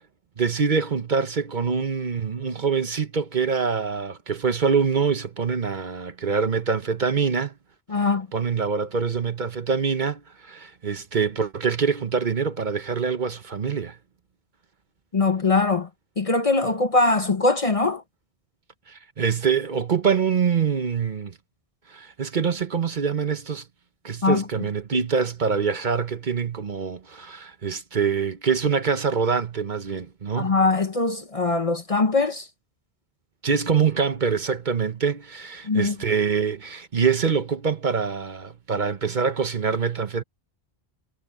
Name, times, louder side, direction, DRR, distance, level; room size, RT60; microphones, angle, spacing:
voice 1, 0.4-7.5 8.3-14.0 18.9-21.3 21.9-23.6 24.0-30.5 33.4-40.2, right 6 dB, 50° right, 1.1 m, -25 dB
voice 2, 7.9-8.3 15.1-15.9 16.2-18.0 24.2-24.4 30.4-32.5 35.6-36.0, left 3 dB, 35° left, 0.8 m, -21 dB
omnidirectional pair, 1.1 m